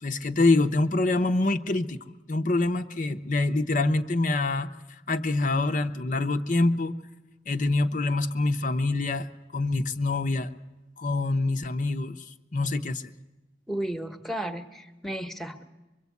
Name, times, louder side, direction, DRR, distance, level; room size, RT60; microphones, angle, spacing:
voice 1, 0.0-4.7 5.1-7.0 7.5-9.3 9.5-10.5 11.0-12.3 12.5-13.1, left 2 dB, 45° left, 7 dB, 0.8 m, -25 dB
voice 2, 13.7-15.6, right 1 dB, ahead, 7 dB, 1.1 m, -33 dB
24.0 x 23.0 x 8.4 m, 1.1 s
head